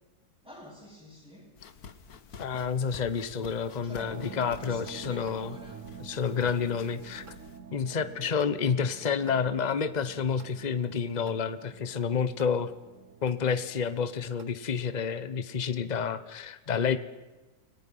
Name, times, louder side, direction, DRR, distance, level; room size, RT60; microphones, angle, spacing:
voice 1, 0.4-1.6 3.8-6.0, right 1 dB, 5° right, 7.6 m, -49 dB
sound 1, 1.5-7.6, left 6 dB, 70° left, 1.9 m, -49 dB
voice 2, 2.4-5.5 6.0-7.2 7.7-12.7 13.2-17.0, left 6 dB, 30° left, 1.1 m, -29 dB
sound 2, 4.0-14.5, right 6 dB, 55° right, 1.4 m, -48 dB
29.5 x 20.0 x 5.7 m
omnidirectional pair, 1.7 m